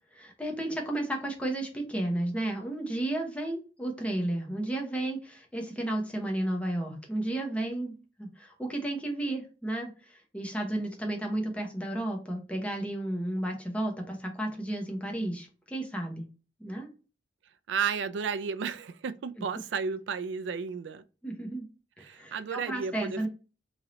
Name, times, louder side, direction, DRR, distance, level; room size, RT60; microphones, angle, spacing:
voice 1, 0.1-16.3 16.6-16.9 19.4-19.5 21.2-21.7 22.0-23.3, right 1 dB, 5° left, 0.8 m, -33 dB
voice 2, 17.7-21.0 22.0-23.3, right 6 dB, 75° right, 0.4 m, -33 dB
3.1 x 2.7 x 3.7 m
head